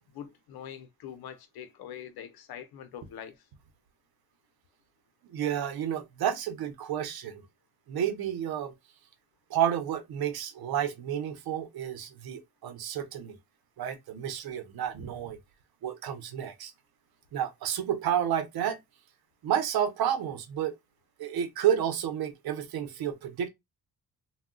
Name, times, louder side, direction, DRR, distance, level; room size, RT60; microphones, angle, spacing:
voice 1, 0.1-3.5, left 9 dB, 90° left, 0.7 m, -44 dB
voice 2, 5.3-7.4 7.9-8.7 9.5-13.4 13.8-15.4 15.8-16.7 17.3-18.8 19.4-20.8 21.2-23.5, right 9 dB, 90° right, 0.8 m, -30 dB
3.6 x 2.3 x 2.2 m
cardioid pair, 130°, 36 cm